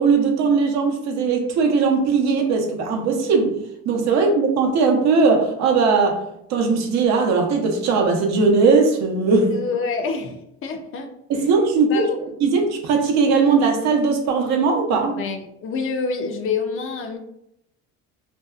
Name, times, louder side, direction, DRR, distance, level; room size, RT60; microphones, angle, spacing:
voice 1, 0.0-3.6 3.9-6.2 6.5-9.6 11.3-12.1 12.4-15.2, right 4 dB, 65° right, 3 dB, 0.6 m, -19 dB
voice 2, 9.5-11.1 11.9-12.2 15.2-17.2, left 5 dB, 45° left, 5 dB, 0.4 m, -27 dB
2.6 x 2.2 x 2.3 m, 0.78 s
cardioid pair, 105°, 30 cm